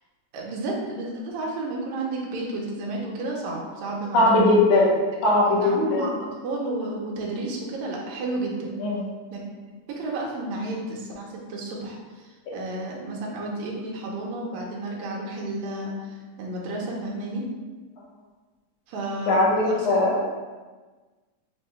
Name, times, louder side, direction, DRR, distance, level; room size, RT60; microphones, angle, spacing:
voice 1, 0.3-4.6 5.6-8.8 9.3-9.4 10.0-17.4 18.9-20.0, right 2 dB, 80° right, -2 dB, 2.0 m, -32 dB
voice 2, 4.1-4.9 5.2-6.0 8.8-9.0 19.3-20.2, left 2 dB, 90° left, -4 dB, 2.4 m, -19 dB
6.2 x 2.2 x 3.1 m, 1.3 s
omnidirectional pair, 3.4 m